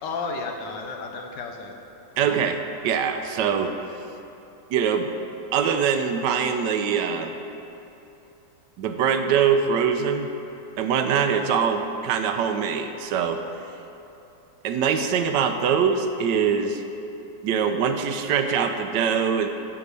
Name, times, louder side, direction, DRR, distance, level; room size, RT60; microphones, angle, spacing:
voice 1, 0.0-1.8 2.1-2.4, left 4 dB, 90° left, 3 dB, 1.6 m, -33 dB
voice 2, 2.2-3.7 4.7-5.1 5.5-7.3 8.8-10.3 10.8-13.4 14.6-16.8 17.4-19.5, right 7 dB, 85° right, 7 dB, 1.3 m, -23 dB
11.0 x 4.9 x 6.8 m, 3.0 s
omnidirectional pair, 1.9 m